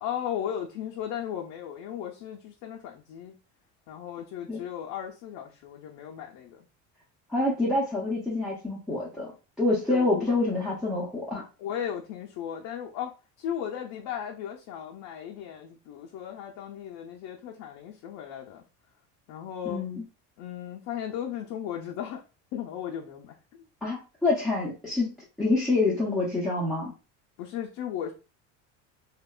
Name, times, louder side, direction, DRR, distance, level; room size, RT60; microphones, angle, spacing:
voice 1, 0.0-3.3 3.9-6.7 9.9-10.4 11.6-13.1 13.4-18.6 19.3-19.8 20.4-22.2 22.5-23.4 27.4-28.1, left 9 dB, 55° left, 0 dB, 0.4 m, -36 dB
voice 2, 7.3-9.3 9.6-11.4 19.6-20.0 23.8-26.9, left 2 dB, ahead, -7 dB, 0.4 m, -27 dB
2.8 x 2.2 x 2.2 m, 0.32 s
cardioid pair, 135°, 36 cm